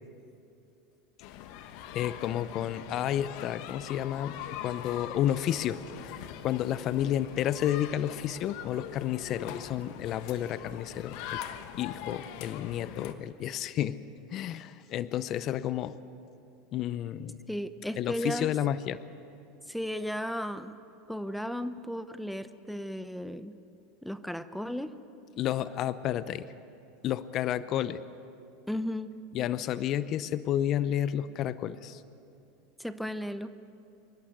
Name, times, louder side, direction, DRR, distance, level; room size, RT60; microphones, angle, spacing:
sound 1, 1.2-13.1, left 10 dB, 65° left, 1.2 m, -42 dB
voice 1, 1.9-4.4 4.6-11.4 11.8-14.0 14.3-16.0 16.7-17.5 18.0-19.0 25.4-26.5 27.0-28.0 29.3-32.0, left 11 dB, 45° left, 15 dB, 0.7 m, -31 dB
voice 2, 17.5-18.5 19.7-20.7 21.1-23.5 24.0-24.9 28.7-29.1 32.8-33.5, equal, ahead, 12 dB, 0.9 m, -35 dB
27.0 x 11.5 x 9.4 m, 2.6 s
hypercardioid pair, 105°, 0 cm